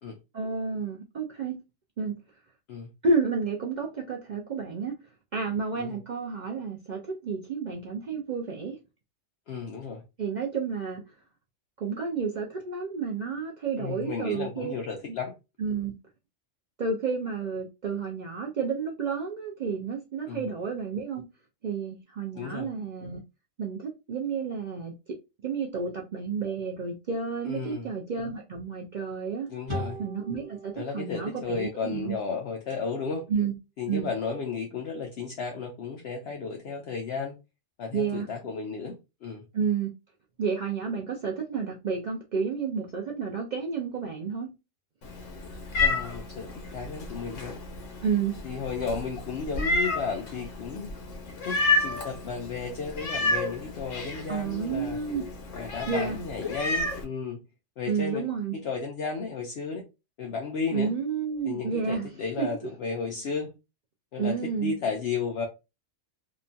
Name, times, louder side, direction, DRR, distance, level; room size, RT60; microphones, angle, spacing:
voice 1, 0.3-1.6 2.0-2.1 3.0-5.0 5.3-8.8 10.2-11.0 11.8-14.7 15.6-15.9 16.8-21.2 21.6-23.2 23.6-24.9 25.4-29.5 30.0-32.2 33.3-33.5 33.9-34.1 37.9-38.3 39.5-39.9 40.4-44.5 48.0-48.3 54.3-55.3 55.9-56.2 57.9-58.6 60.7-62.1 62.4-62.5 64.2-64.8, right 5 dB, 60° right, 0.4 m, -30 dB
voice 2, 9.5-10.0 13.8-15.3 20.3-20.4 22.3-22.7 27.5-27.9 29.5-30.0 30.8-33.3 33.8-37.3 37.8-38.9 39.2-39.4 45.8-47.6 48.4-50.9 51.4-55.0 55.5-57.4 57.8-58.3 58.5-59.8 60.2-60.9 61.4-63.5 64.1-65.5, left 5 dB, 65° left, 0.7 m, -33 dB
sound 1, 29.7-33.0, equal, 25° right, 0.9 m, -41 dB
Meow, 45.0-57.0, left 2 dB, 85° left, 1.2 m, -31 dB
2.9 x 2.2 x 2.5 m
omnidirectional pair, 1.3 m